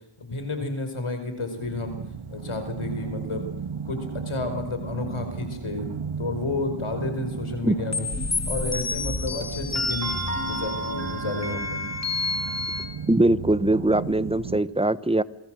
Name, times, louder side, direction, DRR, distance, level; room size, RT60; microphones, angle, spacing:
voice 1, 0.2-2.0 2.3-3.5 3.8-4.0 4.2-5.9 6.2-8.1 8.5-10.1 10.4-11.8, left 2 dB, 80° left, 7 dB, 5.1 m, -31 dB
sound 1, 1.6-14.6, right 6 dB, 75° right, 1.8 m, -35 dB
sound 2, 7.9-12.8, left 2 dB, 35° left, 3.6 m, -29 dB
voice 2, 13.1-15.2, right 2 dB, 10° right, 15 dB, 1.1 m, -21 dB
28.5 x 21.5 x 7.7 m, 0.71 s
wide cardioid pair, 65°, 49 cm